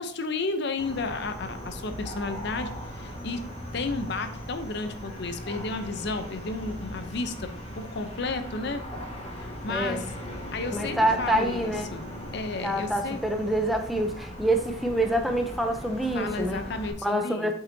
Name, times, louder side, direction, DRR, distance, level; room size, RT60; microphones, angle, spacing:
voice 1, 0.0-3.5 3.7-8.8 9.4-10.0 10.5-13.2 16.1-17.5, left 3 dB, 55° left, 9 dB, 0.6 m, -32 dB
sound 1, 0.8-16.9, equal, 30° left, 1.5 m, -39 dB
voice 2, 9.7-10.1 10.7-11.9 12.6-16.6 17.0-17.5, right 1 dB, ahead, 4 dB, 0.5 m, -26 dB
7.7 x 5.6 x 2.7 m, 0.64 s
head